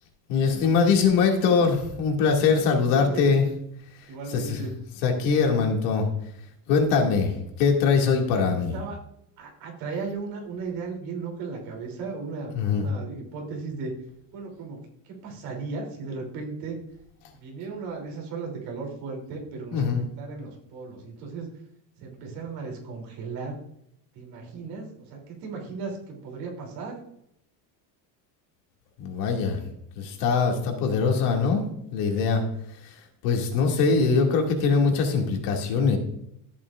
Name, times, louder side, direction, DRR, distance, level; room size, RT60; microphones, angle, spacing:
voice 1, 0.3-3.4 4.3-4.6 5.0-6.1 6.7-8.7 12.5-12.8 19.7-20.0 29.0-29.6 30.0-31.6 31.9-32.4 32.8-36.0, left 5 dB, 75° left, 2 dB, 2.4 m, -22 dB
voice 2, 2.9-3.5 4.1-4.7 8.3-8.4 8.7-9.0 9.4-13.9 14.3-14.8 15.0-16.8 17.3-21.5 22.0-23.5 24.1-27.0, right 4 dB, 50° right, 0 dB, 3.2 m, -36 dB
13.5 x 8.6 x 2.5 m, 0.75 s
cardioid pair, 175°, 45 cm